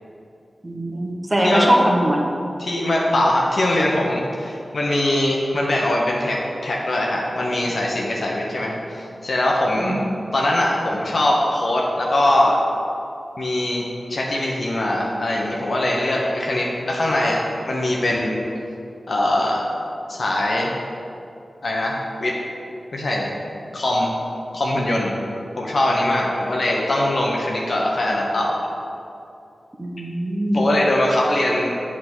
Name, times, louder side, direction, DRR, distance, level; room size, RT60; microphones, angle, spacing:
voice 1, 0.6-2.3 9.8-10.0 29.8-30.6, right 1 dB, 25° right, 0 dB, 1.2 m, -21 dB
voice 2, 2.6-10.0 10.3-12.6 13.4-13.8 14.1-18.4 19.1-19.6 20.1-20.7 21.6-22.4 22.9-23.3 23.7-24.1 24.5-25.2 25.6-28.5 30.5-31.7, left 1 dB, 65° left, -2 dB, 0.9 m, -21 dB
7.8 x 3.7 x 6.1 m, 2.7 s
cardioid pair, 60°, 0 cm